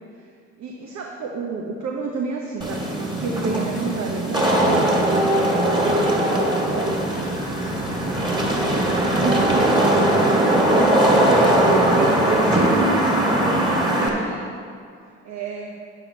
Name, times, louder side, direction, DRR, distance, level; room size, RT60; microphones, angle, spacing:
voice 1, 0.6-4.6 4.9-7.3 8.5-10.6 10.9-14.5 15.2-15.8, right 4 dB, 55° right, 0 dB, 1.1 m, -31 dB
Wind / Rain, 2.6-14.1, right 1 dB, 15° right, 2.3 m, -19 dB
9.3 x 8.1 x 4.1 m, 2.3 s
hypercardioid pair, 50°, 34 cm